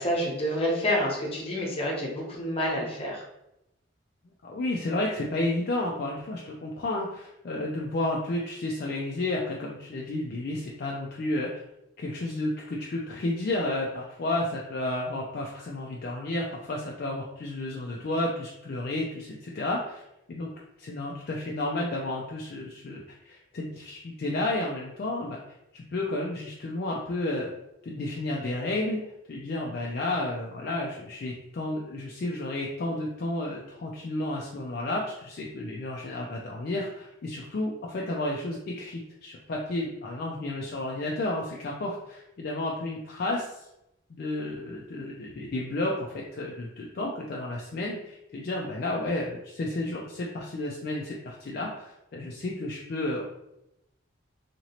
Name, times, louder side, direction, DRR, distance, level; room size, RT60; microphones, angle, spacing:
voice 1, 0.0-3.2, equal, 30° left, -3 dB, 0.7 m, -28 dB
voice 2, 4.4-11.6 12.0-20.0 20.3-20.5 20.8-25.4 25.7-27.5 27.8-29.0 29.3-43.6 44.1-53.2, left 2 dB, 50° left, -2 dB, 0.3 m, -32 dB
2.9 x 2.8 x 2.8 m, 0.86 s
head